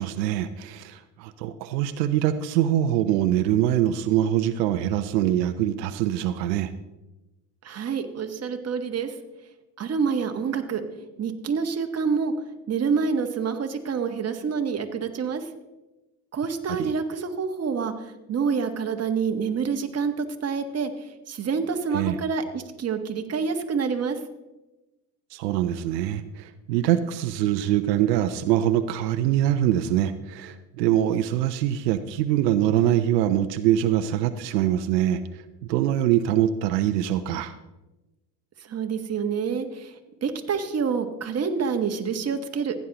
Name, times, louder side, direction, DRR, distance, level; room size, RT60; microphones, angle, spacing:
voice 1, 0.0-6.7 16.7-16.9 21.9-22.2 25.3-37.6, right 12 dB, 80° right, 11 dB, 0.7 m, -24 dB
voice 2, 7.6-9.1 9.8-10.8 11.2-12.3 12.7-15.4 16.3-24.2 38.7-39.9 40.2-42.7, right 6 dB, 30° right, 6 dB, 1.3 m, -27 dB
15.5 x 9.3 x 2.9 m, 1.0 s
hypercardioid pair, 75°, 48 cm